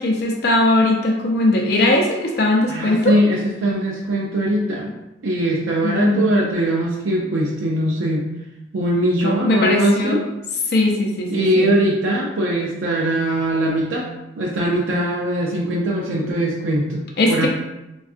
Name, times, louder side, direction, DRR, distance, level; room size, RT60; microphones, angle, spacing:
voice 1, 0.0-3.2 5.8-6.2 9.2-10.2 10.7-11.7 17.2-17.5, left 2 dB, 55° left, 0 dB, 0.5 m, -19 dB
voice 2, 2.7-4.9 5.2-8.2 8.7-10.2 11.3-14.1 14.4-17.5, right 1 dB, 90° right, -3 dB, 0.4 m, -21 dB
3.5 x 2.3 x 2.4 m, 0.97 s
head